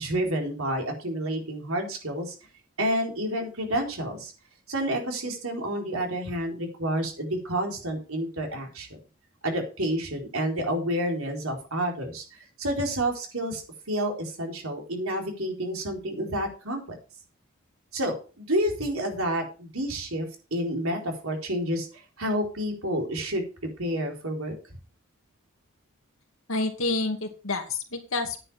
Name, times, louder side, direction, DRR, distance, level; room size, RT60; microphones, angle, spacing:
voice 1, 0.0-2.4 2.8-4.3 4.7-9.0 9.4-17.0 17.9-23.4 23.8-24.5, right 1 dB, 75° right, 2 dB, 4.2 m, -29 dB
voice 2, 26.5-28.4, left 3 dB, 70° left, 5 dB, 2.5 m, -28 dB
10.0 x 9.3 x 5.1 m, 0.33 s
head